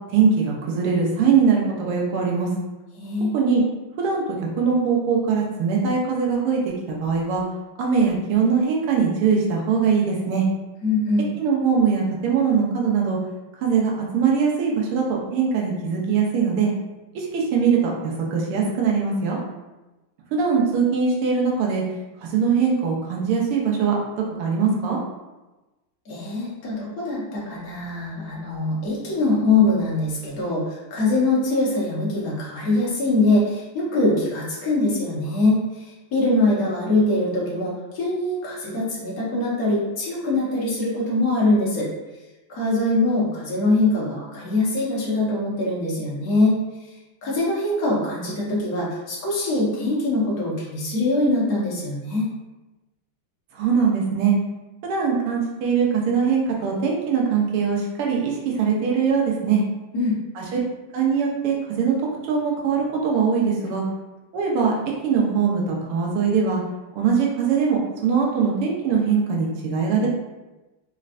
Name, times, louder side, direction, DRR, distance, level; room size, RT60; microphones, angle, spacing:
voice 1, 0.1-2.5 3.3-3.6 4.0-4.2 4.6-7.4 7.8-10.5 11.4-13.2 13.6-15.0 15.3-16.7 17.2-19.4 20.3-21.8 22.2-23.9 24.4-25.0 53.6-54.3 54.8-59.6 60.4-60.6 60.9-62.0 62.3-63.8 64.3-64.7 65.0-66.6 67.0-70.1, right 6 dB, 85° right, -2 dB, 1.7 m, -21 dB
voice 2, 3.0-3.3 10.8-11.3 26.1-41.9 42.5-46.6 47.2-52.3 59.9-60.2, left 2 dB, 50° left, -5 dB, 1.3 m, -23 dB
4.3 x 3.2 x 2.5 m, 1.1 s
omnidirectional pair, 2.4 m